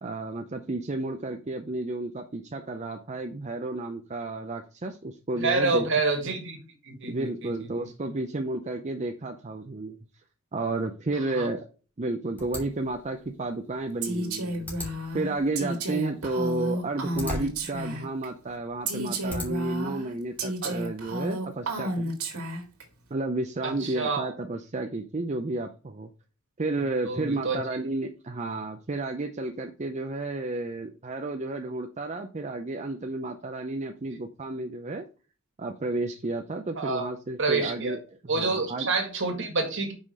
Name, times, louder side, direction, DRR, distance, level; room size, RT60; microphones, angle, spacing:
voice 1, 0.0-5.9 7.1-10.0 10.5-11.7 12.0-14.7 15.1-22.1 23.1-26.1 26.6-35.0 35.6-38.0 38.3-38.9, right 2 dB, 35° right, 5 dB, 0.5 m, -32 dB
voice 2, 5.4-6.6 6.8-7.5 11.4-11.5 20.6-20.8 23.6-24.3 27.1-27.6 36.8-37.1 37.4-38.0 38.3-39.9, right 3 dB, 60° right, 3 dB, 2.0 m, -27 dB
sound 1, 12.4-19.8, equal, 10° left, 2.9 m, -41 dB
Female speech woman speaking, 14.0-18.3 18.9-22.8, right 1 dB, 90° right, 1.9 m, -32 dB
5.6 x 4.9 x 5.3 m, 0.36 s
head